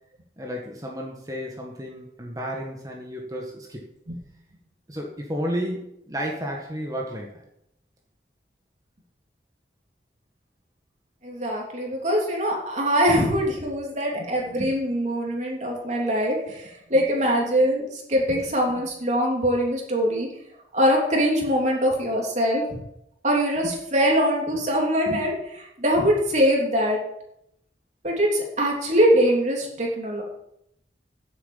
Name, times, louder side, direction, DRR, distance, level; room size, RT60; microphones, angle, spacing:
voice 1, 0.4-3.9 4.9-7.4, equal, 20° right, -1 dB, 1.7 m, -32 dB
voice 2, 11.2-20.3 20.7-22.6 23.2-27.0 28.0-30.2, equal, 40° right, -1 dB, 3.2 m, -23 dB
10.5 x 7.9 x 7.4 m, 0.77 s
head